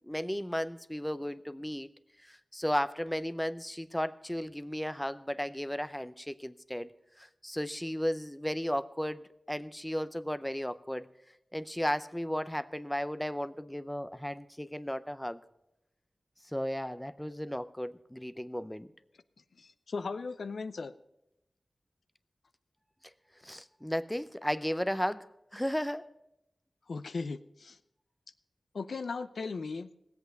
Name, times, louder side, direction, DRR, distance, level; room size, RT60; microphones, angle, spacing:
voice 1, 0.0-1.9 2.2-6.9 7.2-11.1 11.5-15.4 16.5-18.9 23.4-26.1, equal, 5° left, 13 dB, 0.5 m, -34 dB
voice 2, 19.6-20.9 26.9-27.8 28.7-29.9, left 4 dB, 80° left, 13 dB, 0.6 m, -37 dB
18.0 x 8.1 x 6.5 m, 0.85 s
wide cardioid pair, 95°, 0 cm